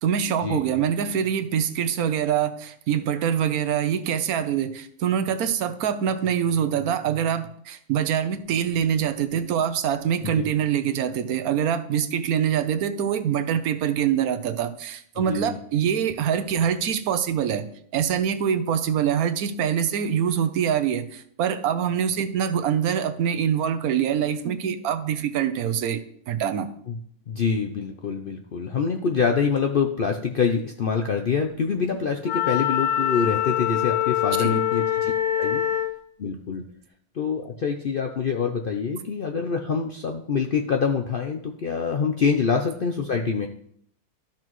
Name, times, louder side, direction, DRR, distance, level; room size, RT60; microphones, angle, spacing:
voice 1, 0.0-17.7 17.9-26.0 26.3-26.7 34.4-34.6, right 8 dB, 75° right, 10 dB, 1.1 m, -24 dB
voice 2, 15.2-15.6 26.9-27.0 27.3-35.1 35.4-35.6 36.2-36.7 37.2-43.5, left 6 dB, 60° left, 3 dB, 0.5 m, -25 dB
Wind instrument woodwind instrument, 32.2-36.0, left 11 dB, 85° left, 1.5 m, -24 dB
13.0 x 5.9 x 3.1 m, 0.66 s
omnidirectional pair, 1.6 m